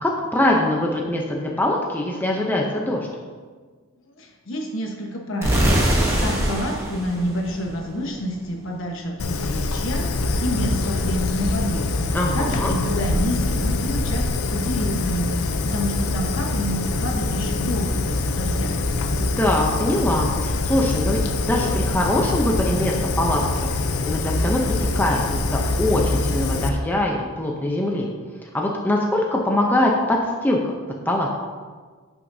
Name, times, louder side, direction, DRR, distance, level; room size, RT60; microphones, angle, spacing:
voice 1, 0.0-3.1 12.1-12.7 19.2-23.4 24.0-28.1 28.5-30.6 31.1-31.3, left 1 dB, 10° left, -1 dB, 0.6 m, -22 dB
voice 2, 4.2-18.8, equal, 60° left, 1 dB, 1.2 m, -29 dB
sound 1, 5.4-8.3, right 1 dB, 10° right, 1.0 m, -22 dB
Fire, 9.2-26.7, left 2 dB, 85° left, 0.6 m, -24 dB
10.5 x 6.1 x 2.7 m, 1.5 s
head